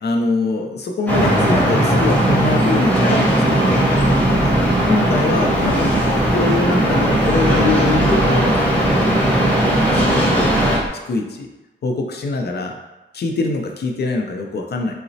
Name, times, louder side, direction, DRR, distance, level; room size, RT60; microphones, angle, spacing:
voice 1, 0.0-5.9 6.3-10.7 11.1-11.5 11.8-12.7 13.1-14.9, left 3 dB, 55° left, 3 dB, 0.5 m, -24 dB
sound 1, 1.1-10.8, right 1 dB, 5° left, 0.7 m, -17 dB
Engine, 3.8-10.9, equal, 25° right, 0.4 m, -31 dB
3.8 x 2.0 x 2.6 m, 1.1 s
wide cardioid pair, 110°, 21 cm